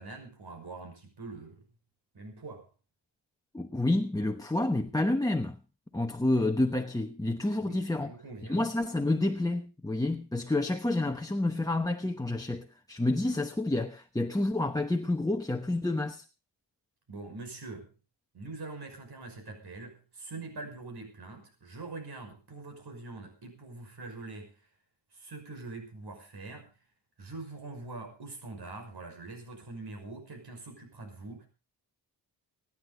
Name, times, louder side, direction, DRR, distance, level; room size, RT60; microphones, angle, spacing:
voice 1, 0.0-1.6 2.1-2.7 7.6-8.6 17.1-17.9 18.3-24.6 25.1-26.7 27.2-31.5, right 3 dB, 65° right, 5.8 m, -44 dB
voice 2, 3.5-5.6 5.9-8.1 8.4-16.2, left 2 dB, 10° left, 1.0 m, -29 dB
23.5 x 10.0 x 4.0 m
wide cardioid pair, 105°, 43 cm